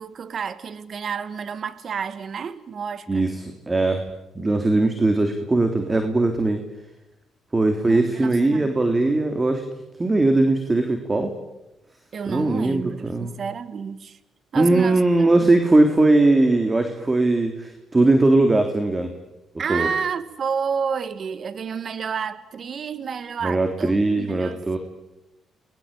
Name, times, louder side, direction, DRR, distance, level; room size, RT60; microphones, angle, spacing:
voice 1, 0.0-3.3 7.8-8.7 12.1-14.2 14.5-15.5 19.6-24.8, right 6 dB, 50° right, 1.9 m, -30 dB
voice 2, 3.1-4.0 4.3-6.6 7.5-9.6 10.0-11.3 12.3-13.3 14.5-19.1 19.7-19.9 23.4-24.8, right 2 dB, 20° right, 3.3 m, -20 dB
29.5 x 22.0 x 9.0 m
cardioid pair, 90°, 0 cm